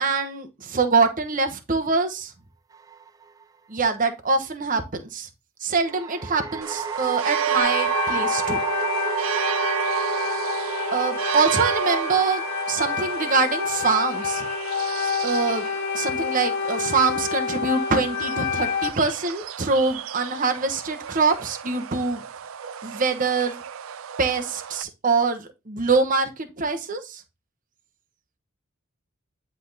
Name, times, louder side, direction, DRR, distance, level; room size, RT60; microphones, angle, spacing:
voice 1, 0.0-2.3 3.7-5.3 5.6-8.6 10.9-12.4 12.7-14.5 15.0-15.6 15.9-22.2 22.8-23.6 24.2-27.2, right 4 dB, 40° right, 1.0 m, -24 dB
sound 1, 2.7-3.4 5.9-17.2, right 6 dB, 15° right, 0.4 m, -33 dB
sound 2, 6.6-24.8, right 8 dB, 75° right, 0.5 m, -32 dB
sound 3, 7.6-18.9, left 6 dB, 55° left, 1.0 m, -28 dB
10.0 x 3.5 x 4.0 m
head